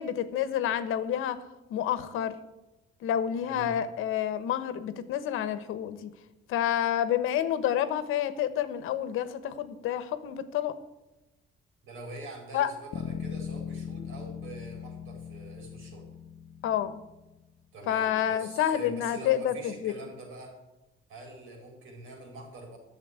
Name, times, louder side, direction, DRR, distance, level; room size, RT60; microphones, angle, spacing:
voice 1, 0.0-1.4 1.7-2.4 3.0-6.1 6.5-10.7 12.5-12.7 16.6-17.0 17.9-19.9, left 10 dB, 85° left, 13 dB, 1.2 m, -29 dB
voice 2, 3.4-3.8 11.8-16.1 17.7-20.6 21.1-22.8, right 2 dB, 85° right, 2 dB, 4.7 m, -45 dB
Bass guitar, 12.9-17.3, left 8 dB, 60° left, 0.8 m, -39 dB
11.5 x 7.3 x 9.6 m, 0.98 s
cardioid pair, 155°, 21 cm